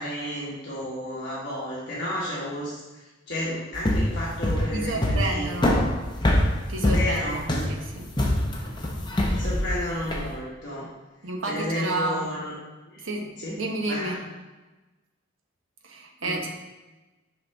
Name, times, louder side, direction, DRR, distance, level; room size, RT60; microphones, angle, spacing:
voice 1, 0.0-5.5 6.8-7.4 9.3-10.9 11.5-12.5 12.9-13.0 13.4-13.6 13.9-14.2 16.2-16.4, left 1 dB, 55° left, -7 dB, 1.4 m, -32 dB
sound 1, 3.7-10.3, left 1 dB, 20° left, 0.7 m, -24 dB
voice 2, 4.7-5.8 6.7-8.1 11.2-12.3 13.0-13.3 13.6-14.1 15.8-16.5, right 2 dB, 70° right, 2 dB, 1.0 m, -30 dB
5.9 x 5.5 x 3.6 m, 1.1 s
head